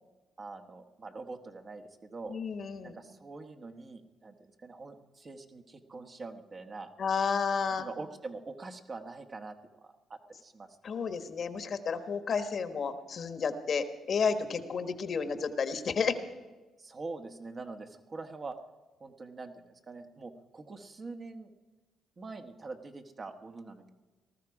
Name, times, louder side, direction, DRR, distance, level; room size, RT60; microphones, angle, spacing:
voice 1, 0.4-2.4 2.8-6.9 7.8-9.6 9.8-10.8 16.8-18.6 19.0-21.5 22.2-24.0, right 3 dB, 35° right, 5 dB, 1.2 m, -44 dB
voice 2, 2.3-2.9 7.0-7.9 10.8-16.2, left 5 dB, 50° left, 10 dB, 1.2 m, -31 dB
19.0 x 13.5 x 4.8 m, 1.2 s
cardioid pair, 90°, 0 cm